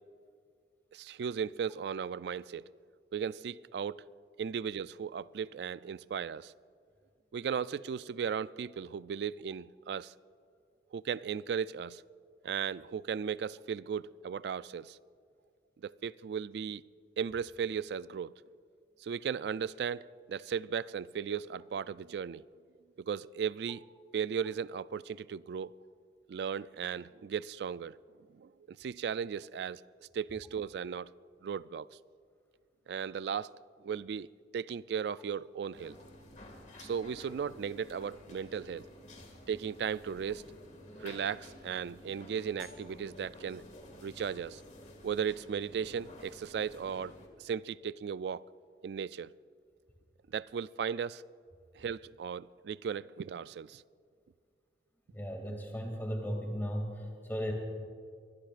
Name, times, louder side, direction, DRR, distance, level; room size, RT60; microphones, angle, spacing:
voice 1, 0.9-2.7 3.1-4.0 4.4-6.5 7.3-10.1 10.9-12.0 12.4-15.0 15.8-16.8 17.2-18.4 19.0-22.4 23.0-23.8 24.1-25.7 26.3-28.0 28.3-29.8 30.1-31.1 31.4-31.9 32.9-33.5 33.8-34.3 34.5-36.0 36.8-38.9 39.5-40.5 41.0-43.6 44.0-44.6 45.0-48.4 48.8-49.3 50.3-51.2 51.7-53.8, right 7 dB, 70° right, 0.3 m, -36 dB
sound 1, 35.7-47.3, left 1 dB, 40° left, 2.0 m, -52 dB
voice 2, 55.1-57.5, equal, 10° left, 2.4 m, -36 dB
23.5 x 20.5 x 2.5 m
head